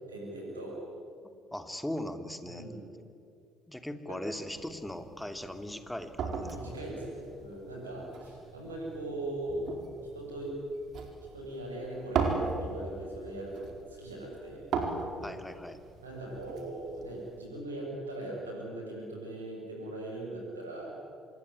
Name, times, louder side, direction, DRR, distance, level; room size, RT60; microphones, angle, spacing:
voice 1, 0.1-0.8 2.5-2.9 4.1-4.3 6.5-9.7 10.1-10.6 11.3-14.7 16.0-21.0, right 1 dB, 85° right, -2 dB, 6.9 m, -40 dB
voice 2, 1.5-2.7 3.7-6.8 8.0-8.1 15.2-15.8, left 1 dB, 5° left, 8 dB, 2.7 m, -39 dB
sound 1, 4.5-17.4, right 5 dB, 55° right, 4.6 m, -38 dB
26.0 x 21.5 x 10.0 m, 2.4 s
figure-of-eight pair, 50°, 0 cm